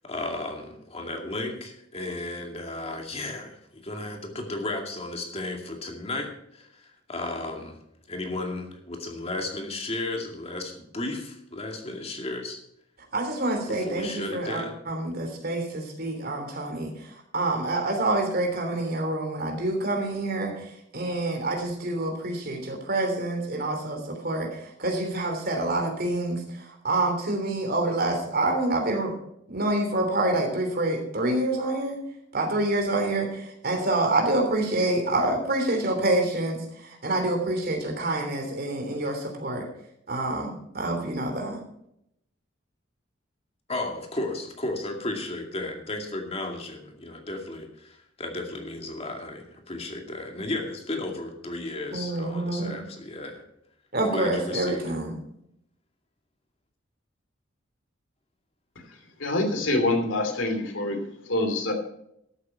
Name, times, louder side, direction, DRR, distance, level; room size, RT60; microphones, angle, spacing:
voice 1, 0.0-7.8 8.1-12.6 13.7-14.8 43.7-53.5 54.0-54.9, left 2 dB, 35° left, 3 dB, 2.3 m, -34 dB
voice 2, 13.1-20.6 20.9-29.2 29.5-32.0 32.3-39.7 40.1-41.6 51.9-52.8 53.9-55.2, right 2 dB, 55° right, 3 dB, 3.2 m, -27 dB
voice 3, 59.2-61.0 61.3-61.7, left 2 dB, 90° left, 5 dB, 2.7 m, -25 dB
13.5 x 8.5 x 5.7 m, 0.76 s
head